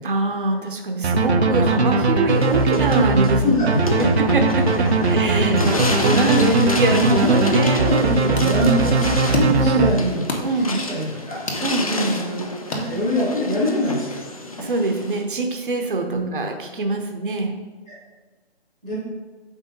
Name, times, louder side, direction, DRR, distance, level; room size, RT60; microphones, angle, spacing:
voice 1, 0.0-3.6 3.9-5.5 6.0-6.5 6.7-8.2 9.3-10.0 10.4-10.8 11.6-12.2 14.6-17.6, right 2 dB, 55° right, 3 dB, 0.9 m, -24 dB
sound 1, 1.0-10.4, right 3 dB, 90° right, 0.8 m, -20 dB
sound 2, 2.3-15.2, left 2 dB, 35° left, 0.6 m, -30 dB
voice 2, 3.4-4.0 5.0-5.7 6.1-9.0 9.6-10.2 10.5-11.4 12.1-12.4 12.7-14.2 16.1-16.5 17.9-18.0 18.8-19.0, equal, ahead, -15 dB, 1.0 m, -24 dB
sound 3, 7.8-13.5, left 2 dB, 80° left, 1.8 m, -32 dB
7.8 x 5.5 x 3.9 m, 1.3 s
hypercardioid pair, 175°, 32 cm